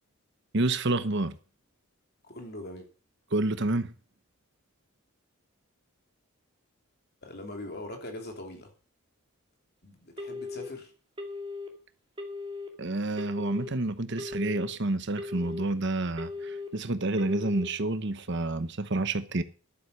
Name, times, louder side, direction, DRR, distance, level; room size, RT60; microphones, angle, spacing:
voice 1, 0.5-1.3 3.3-3.9 12.8-19.4, right 2 dB, 50° right, 1.1 m, -29 dB
voice 2, 2.2-2.9 7.2-8.7 9.8-10.9, left 1 dB, 45° left, 3.0 m, -41 dB
Telephone, 10.2-10.7 11.2-11.7 12.2-12.7 13.2-13.7 14.2-14.7 15.2-15.7 16.2-16.7 17.2-17.7, left 3 dB, 25° right, 2.2 m, -37 dB
11.5 x 9.5 x 6.6 m
head